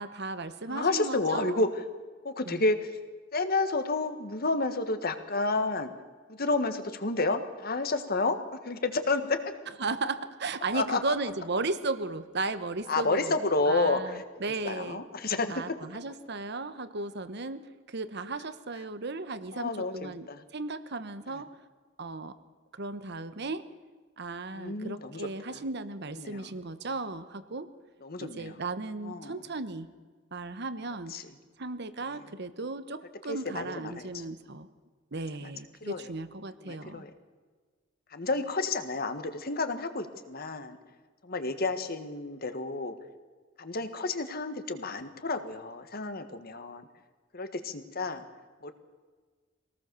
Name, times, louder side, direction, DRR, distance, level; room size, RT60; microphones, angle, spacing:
voice 1, 0.0-1.6 2.5-2.6 9.8-13.4 13.7-15.0 15.5-21.5 22.0-22.4 22.7-23.6 24.2-27.7 28.2-29.9 30.3-31.1 31.6-34.7 35.1-37.0, right 3 dB, 60° right, 12 dB, 1.2 m, -35 dB
voice 2, 0.7-1.7 2.2-2.9 3.3-5.9 6.3-8.4 8.6-9.4 10.7-11.1 12.9-14.2 14.6-15.8 19.5-20.4 21.3-21.4 24.5-25.6 26.2-26.5 28.0-28.6 29.0-29.4 31.1-31.3 32.1-32.2 33.3-34.2 35.8-36.1 36.6-37.1 38.1-40.8 41.2-42.9 43.6-46.9 47.3-48.2 48.6-48.7, left 3 dB, 50° left, 8 dB, 1.7 m, -30 dB
24.0 x 18.5 x 7.0 m, 1.5 s
head